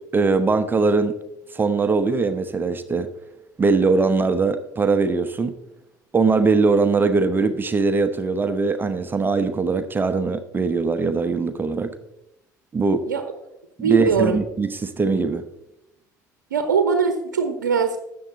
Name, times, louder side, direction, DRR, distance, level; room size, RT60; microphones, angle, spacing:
voice 1, 0.1-1.2 1.5-3.1 3.6-5.5 6.1-11.9 12.7-13.1 13.8-15.4, right 4 dB, 20° right, 11 dB, 1.0 m, -21 dB
voice 2, 13.8-14.4 16.5-18.0, right 6 dB, 75° right, 8 dB, 0.9 m, -21 dB
13.0 x 8.8 x 4.0 m, 0.87 s
figure-of-eight pair, 65°, 10 cm